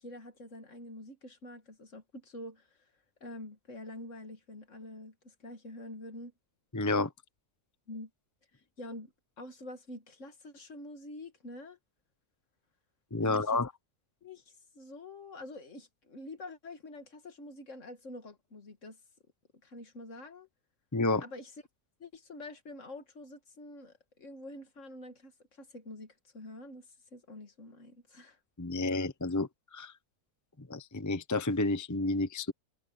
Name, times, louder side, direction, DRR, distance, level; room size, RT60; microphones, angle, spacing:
voice 1, 0.0-2.7 3.2-6.3 7.9-8.1 8.8-9.1 9.4-11.8 13.2-13.6 14.2-19.0 19.6-20.5 21.2-21.5 22.0-25.3 25.6-28.4, left 1 dB, 50° left, 2.2 m, -46 dB
voice 2, 6.7-7.1 13.1-13.7 20.9-21.2 28.6-29.9 30.7-32.5, left 2 dB, 15° left, 0.7 m, -30 dB
omnidirectional pair, 1.6 m